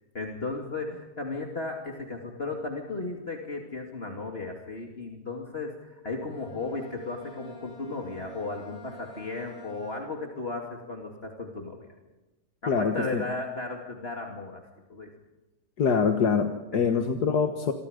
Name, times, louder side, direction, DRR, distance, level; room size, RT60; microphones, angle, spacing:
voice 1, 0.1-11.8 12.6-14.6 14.9-15.1 16.7-17.0, left 3 dB, 40° left, 1 dB, 2.8 m, -35 dB
Bowed string instrument, 6.2-10.5, right 2 dB, 15° left, 5.5 m, -49 dB
voice 2, 12.7-13.2 15.8-17.7, left 6 dB, 80° left, 5 dB, 2.0 m, -24 dB
28.5 x 24.5 x 5.2 m, 1.0 s
omnidirectional pair, 1.7 m